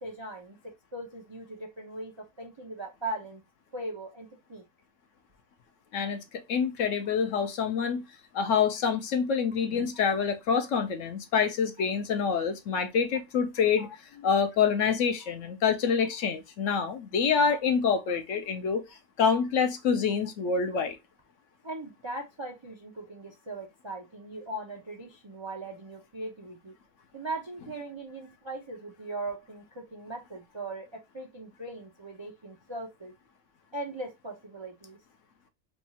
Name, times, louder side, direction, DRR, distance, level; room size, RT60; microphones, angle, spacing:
voice 1, 0.0-3.4 3.7-4.6 7.4-7.5 13.8-13.9 15.2-15.3 18.1-18.2 21.6-26.7 27.1-33.1 33.7-35.0, right 2 dB, 40° right, 0.4 m, -39 dB
voice 2, 5.9-8.0 8.3-18.8 19.2-21.0, left 6 dB, 70° left, 0.9 m, -26 dB
3.4 x 2.3 x 4.0 m
omnidirectional pair, 1.5 m